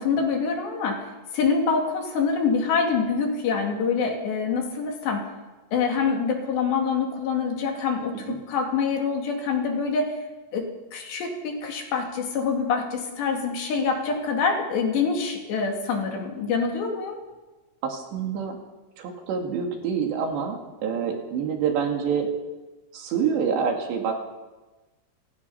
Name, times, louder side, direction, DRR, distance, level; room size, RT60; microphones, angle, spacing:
voice 1, 0.0-5.3 5.7-10.2 10.5-17.2, left 5 dB, 65° left, 2 dB, 4.6 m, -25 dB
voice 2, 17.8-18.6 19.0-22.3 22.9-24.1, right 6 dB, 65° right, 3 dB, 4.2 m, -27 dB
29.5 x 16.0 x 5.7 m, 1.2 s
omnidirectional pair, 5.6 m